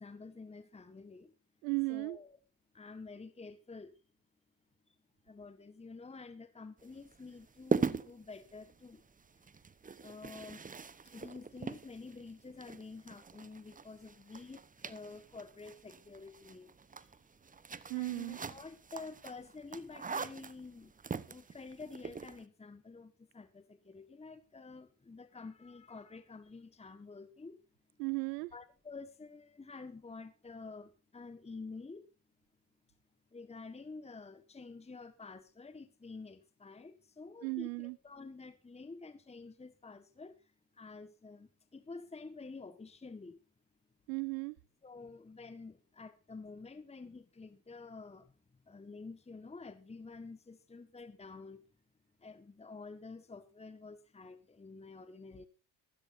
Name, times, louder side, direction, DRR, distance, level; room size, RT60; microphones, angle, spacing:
voice 1, 0.0-1.3 1.9-2.4 2.7-3.9 4.9-5.0 5.2-9.0 9.5-9.7 10.0-10.7 11.0-17.1 17.9-20.9 21.2-27.6 28.5-32.1 33.3-43.4 44.8-51.6 52.2-55.5, left 4 dB, 15° left, 1.5 m, -49 dB
voice 2, 1.6-2.2 17.9-18.4 28.0-28.5 37.4-38.0 44.1-44.6, right 29 dB, 80° right, 0.6 m, -35 dB
sound 1, 6.8-22.4, right 5 dB, 15° right, 0.9 m, -42 dB
16.0 x 14.0 x 2.7 m
supercardioid pair, 85°, 49 cm